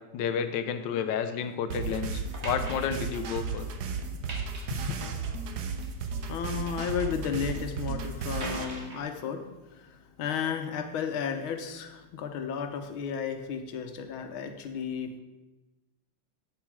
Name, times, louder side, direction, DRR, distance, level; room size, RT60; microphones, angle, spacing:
voice 1, 0.1-3.7 4.7-5.0, left 7 dB, 70° left, 9 dB, 1.3 m, -31 dB
sound 1, 1.7-1.9 2.3-3.7 4.0-5.3 5.7-6.8 7.2-7.7 8.4-9.0, right 2 dB, 35° right, 1.5 m, -42 dB
sound 2, 1.7-8.6, right 5 dB, 60° right, 1.2 m, -34 dB
voice 2, 6.2-15.2, left 7 dB, 90° left, 6 dB, 1.7 m, -33 dB
8.5 x 7.3 x 4.8 m, 1.1 s
omnidirectional pair, 2.2 m